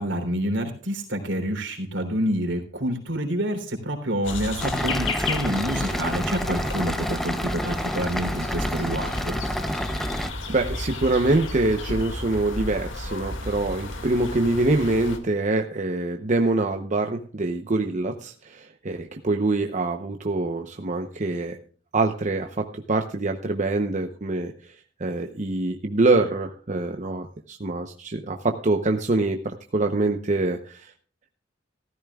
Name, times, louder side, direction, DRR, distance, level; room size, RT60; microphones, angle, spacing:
voice 1, 0.0-9.4, equal, 70° right, 4 dB, 3.5 m, -28 dB
sound 1, 4.2-15.2, left 2 dB, 85° left, 2.2 m, -33 dB
sound 2, 4.6-10.3, equal, ahead, 0.7 m, -29 dB
voice 2, 10.5-21.6 21.9-24.5 25.0-30.9, right 2 dB, 40° right, 5 dB, 0.8 m, -25 dB
15.5 x 14.0 x 2.4 m, 0.43 s
head